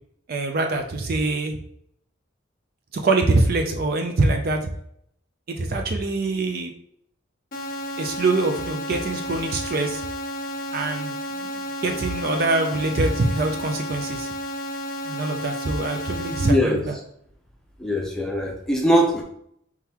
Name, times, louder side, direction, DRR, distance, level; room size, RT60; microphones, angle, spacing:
voice 1, 0.3-1.6 2.9-4.6 5.5-6.7 8.0-10.0 10.7-11.1 11.4-11.5 11.8-14.3 15.1-16.9, right 2 dB, 50° right, 4 dB, 0.5 m, -24 dB
sound 1, 7.5-16.5, equal, 45° left, 0.6 m, -32 dB
voice 2, 16.4-16.8 17.8-19.2, equal, 5° left, 0 dB, 0.7 m, -21 dB
4.6 x 3.7 x 2.9 m, 0.67 s
head